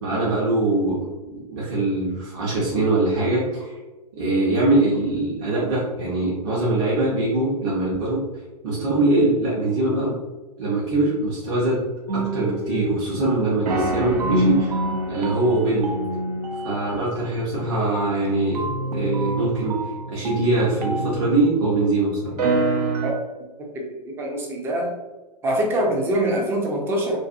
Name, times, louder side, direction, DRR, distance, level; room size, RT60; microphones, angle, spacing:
voice 1, 0.0-1.0 1.3-3.7 4.2-8.2 8.6-10.2 10.6-11.8 12.1-14.8 15.1-15.9 16.6-18.7 18.9-22.4, right 2 dB, 40° right, -7 dB, 0.8 m, -22 dB
sound 1, 12.1-13.3 13.7-21.8 22.2-23.1, right 2 dB, 70° right, 0.5 m, -27 dB
voice 2, 23.6-24.9 25.4-27.2, right 1 dB, 10° right, 0 dB, 0.4 m, -24 dB
2.5 x 2.5 x 2.5 m, 1.1 s
hypercardioid pair, 120°, 21 cm